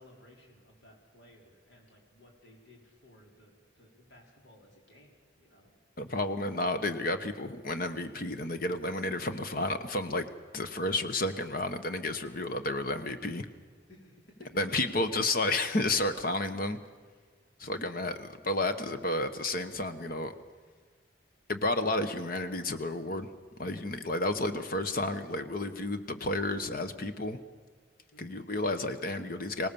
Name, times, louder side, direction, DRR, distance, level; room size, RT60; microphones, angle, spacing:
voice 1, 0.0-5.7 13.9-14.5 28.1-28.5, left 1 dB, 80° left, -1 dB, 4.6 m, -58 dB
voice 2, 6.0-10.3 10.5-13.4 14.6-16.8 17.6-20.3 21.5-23.3 23.6-27.4 28.2-29.7, left 2 dB, 50° left, 9 dB, 1.2 m, -31 dB
25.0 x 18.5 x 7.1 m, 1.5 s
head